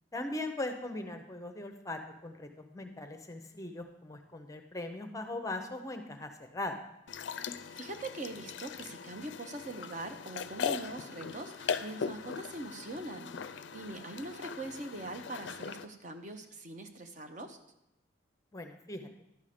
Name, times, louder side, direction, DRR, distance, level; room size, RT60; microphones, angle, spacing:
voice 1, 0.1-6.8 18.5-19.1, left 2 dB, 15° left, 6 dB, 0.6 m, -40 dB
sound 1, 7.1-15.8, left 6 dB, 70° left, 0.4 m, -40 dB
voice 2, 7.4-17.6, right 2 dB, 40° right, 6 dB, 0.6 m, -43 dB
11.5 x 5.5 x 4.9 m, 0.85 s
head